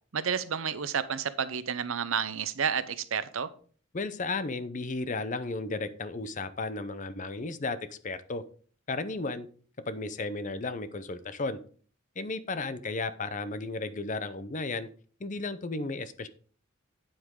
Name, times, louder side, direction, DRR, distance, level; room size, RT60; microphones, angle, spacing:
voice 1, 0.1-3.5, right 7 dB, 75° right, 0.7 m, -30 dB
voice 2, 3.9-8.4 8.9-9.5 9.9-11.6 12.2-14.9 15.2-16.3, left 3 dB, 35° left, 0.7 m, -34 dB
9.0 x 7.9 x 3.7 m
head